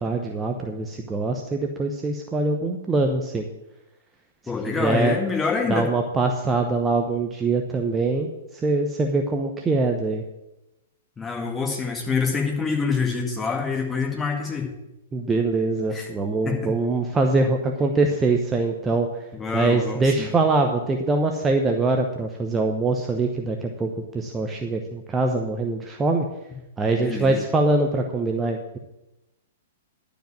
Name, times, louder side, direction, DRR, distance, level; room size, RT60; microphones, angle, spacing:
voice 1, 0.0-3.5 4.7-5.2 5.7-8.3 8.6-10.2 15.1-19.1 19.5-26.3 26.8-28.8, right 3 dB, 15° right, 3 dB, 0.9 m, -23 dB
voice 2, 4.5-5.9 11.2-14.7 15.9-16.1 16.5-16.7 19.3-20.3 27.0-27.4, left 5 dB, 15° left, 1 dB, 2.0 m, -26 dB
11.5 x 5.1 x 8.7 m, 0.94 s
figure-of-eight pair, 110°, 0 cm